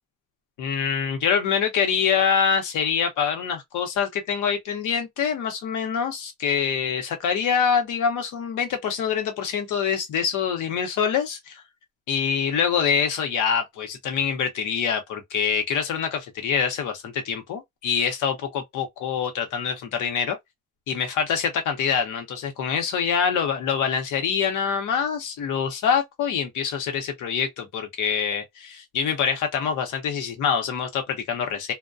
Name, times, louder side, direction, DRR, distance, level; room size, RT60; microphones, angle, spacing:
voice 1, 0.6-11.6 12.1-20.4 20.9-31.7, left 7 dB, 85° left, 0.9 m, -25 dB
2.3 x 2.2 x 2.4 m
cardioid pair, 90°, 30 cm